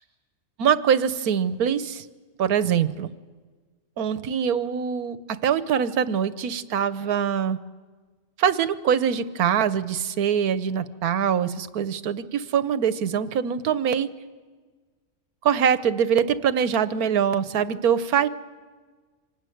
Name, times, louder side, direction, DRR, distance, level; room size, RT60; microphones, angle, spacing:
voice 1, 0.6-2.0 2.4-3.1 4.0-7.6 8.4-14.1 15.4-18.3, right 8 dB, 85° right, 13 dB, 1.4 m, -23 dB
25.5 x 19.0 x 9.2 m, 1.4 s
omnidirectional pair, 1.5 m